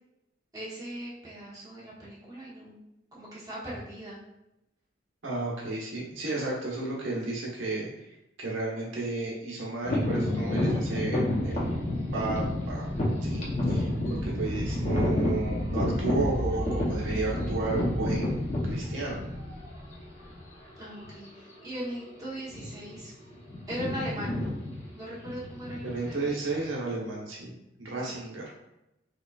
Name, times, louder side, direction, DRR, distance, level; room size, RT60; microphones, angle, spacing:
voice 1, 0.5-2.8 3.1-4.2 20.8-23.1 23.7-24.6 24.9-26.4 28.0-28.2, equal, 20° right, -9 dB, 1.1 m, -39 dB
voice 2, 5.2-7.9 8.4-11.6 12.1-12.9 13.2-18.4 18.6-19.2 25.8-28.4, right 2 dB, 75° right, -5 dB, 1.1 m, -33 dB
sound 1, 9.8-19.6 20.3-20.4 21.0-21.3 21.5-21.8 22.4-23.0 23.2-26.7, left 1 dB, 40° left, 0.8 m, -30 dB
Aircraft, 11.3-20.8, equal, 55° right, 0.9 m, -34 dB
5.0 x 2.3 x 2.4 m, 0.90 s
head